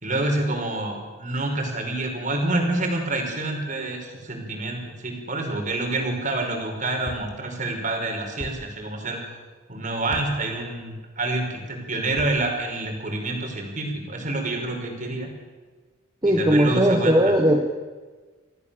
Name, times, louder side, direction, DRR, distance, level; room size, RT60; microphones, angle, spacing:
voice 1, 0.0-9.2 9.7-15.3 16.2-17.3, right 2 dB, 40° right, 2 dB, 5.1 m, -27 dB
sound 1, 7.0-7.3 8.4-8.6 10.1-10.3 12.1-12.4, left 1 dB, 60° left, 3.4 m, -36 dB
voice 2, 16.2-17.6, equal, 20° right, 3 dB, 1.4 m, -18 dB
26.0 x 17.0 x 7.1 m, 1.3 s
head